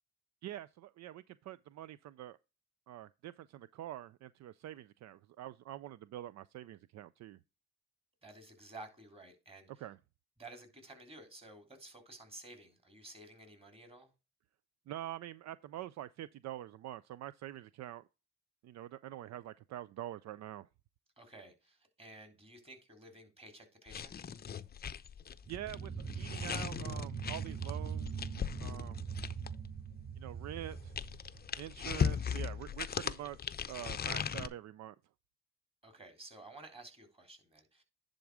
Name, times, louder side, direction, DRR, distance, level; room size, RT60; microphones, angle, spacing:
voice 1, 0.4-2.4 2.9-7.4 9.8-10.0 14.9-18.0 18.6-20.7 25.5-28.3 28.6-29.1 30.2-30.9 31.6-35.0, right 13 dB, 65° right, 0.4 m, -45 dB
voice 2, 8.2-9.8 10.4-14.1 21.2-24.1 35.8-37.8, right 2 dB, 20° right, 3.4 m, -53 dB
sound 1, 23.9-29.7 30.5-34.5, left 7 dB, 30° left, 0.6 m, -38 dB
sound 2, 25.4-31.9, right 6 dB, 40° right, 5.4 m, -42 dB
10.5 x 3.9 x 4.8 m
cardioid pair, 90°, 30 cm